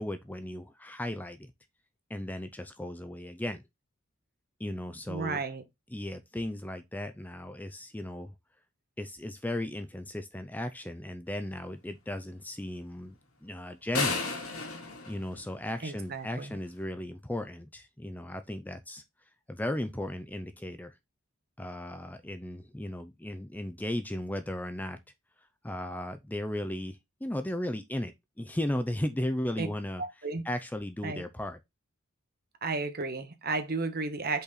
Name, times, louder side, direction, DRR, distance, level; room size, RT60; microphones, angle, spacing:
voice 1, 0.0-1.5 2.1-3.6 4.6-5.4 5.9-8.3 9.0-14.3 15.1-19.0 19.5-20.9 21.6-25.0 25.6-30.0 30.4-31.6, left 1 dB, 10° left, 0.5 m, -36 dB
voice 2, 5.1-5.6 15.8-16.6 29.6-29.7 30.0-30.4 31.0-31.3 32.6-34.4, right 3 dB, 45° right, 1.2 m, -33 dB
sound 1, 13.9-16.1, left 4 dB, 90° left, 2.4 m, -33 dB
5.6 x 4.3 x 4.0 m
head